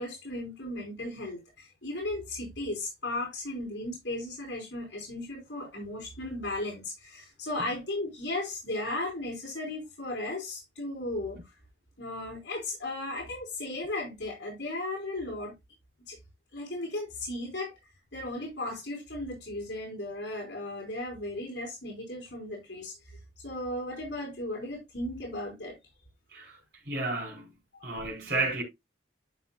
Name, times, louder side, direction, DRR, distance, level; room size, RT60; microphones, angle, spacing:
voice 1, 0.0-11.4 12.0-15.5 16.1-16.2 16.5-17.7 18.1-25.8 27.7-27.9, left 1 dB, 80° left, 4.4 m, -36 dB
voice 2, 26.9-27.6 27.8-28.6, right 3 dB, 65° right, 4.2 m, -32 dB
12.0 x 5.6 x 2.3 m
head